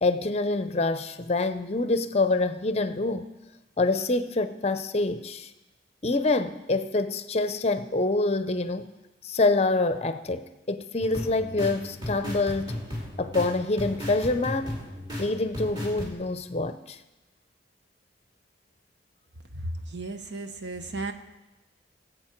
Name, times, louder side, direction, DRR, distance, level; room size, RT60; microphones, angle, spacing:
voice 1, 0.0-3.3 3.8-5.5 6.0-8.9 9.2-12.7 13.2-14.7 15.2-17.0, left 2 dB, 35° left, 0.6 m, -26 dB
sound 1, 11.0-16.1, left 1 dB, 25° right, 2.6 m, -36 dB
voice 2, 19.5-21.1, right 2 dB, 70° right, 1.1 m, -34 dB
21.5 x 8.0 x 4.5 m
head